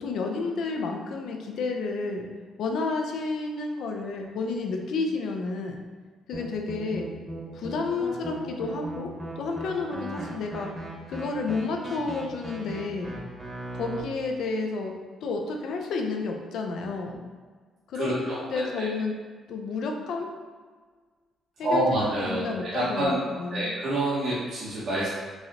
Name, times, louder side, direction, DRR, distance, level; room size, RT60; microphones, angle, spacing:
voice 1, 0.0-2.3 2.6-5.8 6.3-7.1 7.5-9.1 9.4-10.7 11.1-13.2 13.7-14.9 15.2-17.2 17.9-19.1 19.5-20.3 21.6-23.1 23.4-23.7, left 3 dB, 75° left, 2 dB, 0.5 m, -31 dB
sound 1, 6.3-14.0, right 1 dB, 30° right, 1.0 m, -38 dB
voice 2, 17.9-18.9 21.6-25.1, right 1 dB, 65° right, -9 dB, 1.0 m, -27 dB
4.6 x 2.8 x 2.9 m, 1.5 s
cardioid pair, 90°, 0 cm